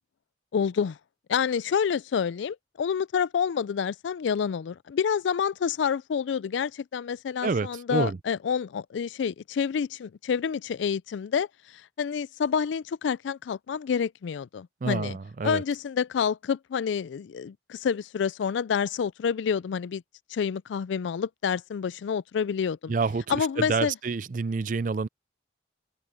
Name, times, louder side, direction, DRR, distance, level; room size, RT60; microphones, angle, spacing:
voice 1, 0.5-1.0 1.3-15.2 15.4-20.0 20.3-22.9 23.3-23.9, left 7 dB, 80° left, 0.4 m, -28 dB
voice 2, 7.4-8.2 14.8-15.6 22.9-25.1, right 4 dB, 45° right, 0.4 m, -28 dB
head